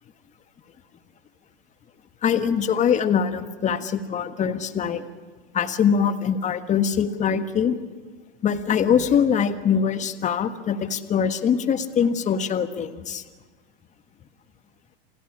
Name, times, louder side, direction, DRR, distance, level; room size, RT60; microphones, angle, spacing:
voice 1, 2.2-5.0 5.5-7.8 8.4-13.2, left 7 dB, 25° left, 11 dB, 1.5 m, -23 dB
28.0 x 17.5 x 9.8 m, 1.3 s
supercardioid pair, 130°, 29 cm